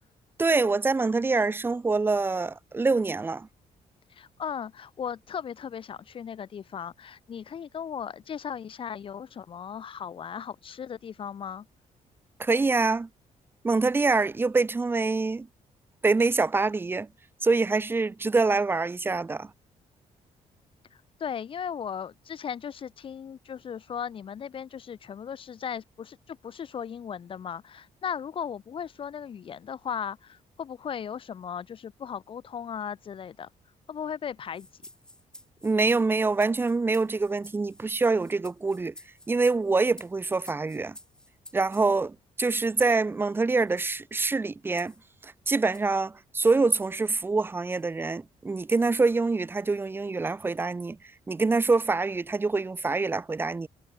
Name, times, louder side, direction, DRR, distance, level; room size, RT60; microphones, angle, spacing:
voice 1, 0.4-3.5 12.4-13.1 13.6-15.5 16.0-17.1 17.4-19.5 35.6-38.9 39.3-41.0 41.5-44.9 45.2-51.0 51.3-53.7, right 3 dB, 15° right, 1.1 m, -25 dB
voice 2, 4.1-11.7 21.2-33.5 33.9-34.7, left 8 dB, 40° left, 2.2 m, -37 dB
sound 1, 34.5-41.9 42.8-43.0 43.7-43.9 44.8-45.0 45.6-46.0 46.7-47.0 47.7-47.9 48.7-49.0, left 1 dB, 5° left, 2.1 m, -51 dB
cardioid pair, 160°, 13 cm